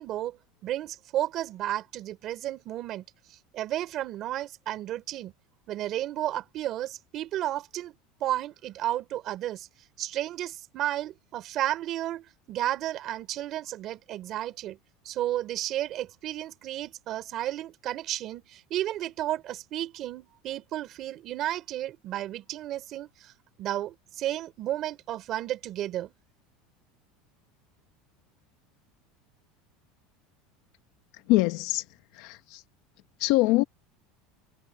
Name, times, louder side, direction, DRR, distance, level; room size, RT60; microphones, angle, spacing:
voice 1, 0.0-3.0 3.3-5.3 5.7-7.9 8.2-9.7 10.0-14.8 15.0-23.3 23.6-26.1, right 13 dB, 35° right, 3.7 m, -33 dB
voice 2, 31.1-31.9 32.1-32.6 33.2-33.6, left 20 dB, 55° left, 0.9 m, -24 dB
cardioid pair, 170°, 0 cm